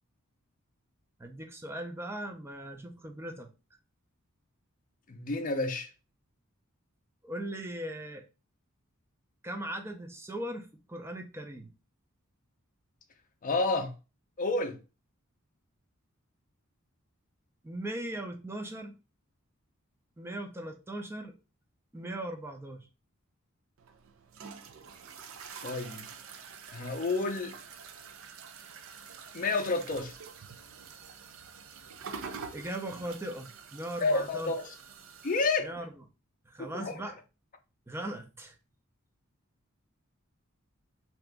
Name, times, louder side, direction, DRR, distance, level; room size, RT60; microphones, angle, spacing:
voice 1, 1.2-3.5 7.2-8.3 9.4-11.7 17.6-18.9 20.2-21.3 21.9-22.9 32.5-34.5 35.6-36.0 36.4-37.2 37.9-38.6, right 1 dB, 10° right, 0.5 m, -39 dB
voice 2, 5.1-5.9 13.4-13.9 14.4-14.8 25.6-26.1 26.7-27.6 29.3-30.1 34.0-34.7 35.2-35.7 36.6-36.9, left 3 dB, 40° left, 0.5 m, -30 dB
sound 1, 23.8-35.5, right 6 dB, 65° right, 0.5 m, -47 dB
2.8 x 2.5 x 3.4 m
head